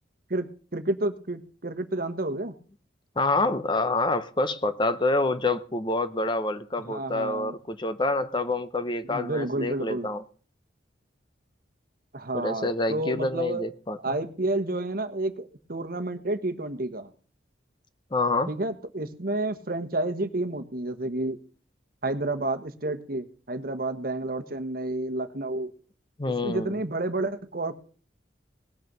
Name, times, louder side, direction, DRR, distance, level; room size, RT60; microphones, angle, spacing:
voice 1, 0.3-2.5 6.8-7.5 9.0-10.1 12.1-13.7 14.0-17.1 18.5-21.4 22.0-25.7 26.3-27.7, right 2 dB, 50° right, 1.2 m, -30 dB
voice 2, 3.2-10.2 12.3-14.1 18.1-18.5 26.2-26.8, left 2 dB, 25° left, 0.8 m, -27 dB
18.5 x 6.6 x 6.8 m
head